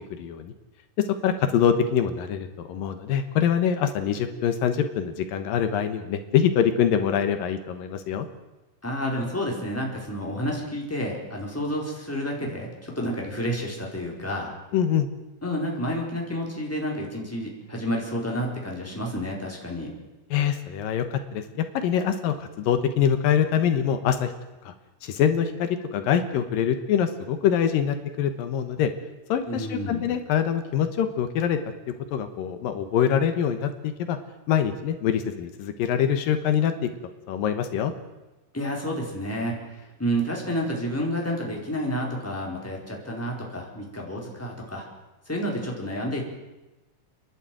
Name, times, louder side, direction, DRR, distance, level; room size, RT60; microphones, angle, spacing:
voice 1, 0.1-0.5 1.2-8.3 14.7-15.1 20.3-24.3 24.6-24.7 25.0-28.9 29.3-31.6 32.1-34.2 34.5-36.9 37.3-37.9, left 8 dB, 80° left, 8 dB, 2.9 m, -24 dB
voice 2, 8.8-14.5 15.4-19.9 29.5-30.1 38.5-44.9 45.3-46.2, equal, 5° left, -2 dB, 4.1 m, -30 dB
29.0 x 11.5 x 9.2 m, 1.1 s
omnidirectional pair, 4.0 m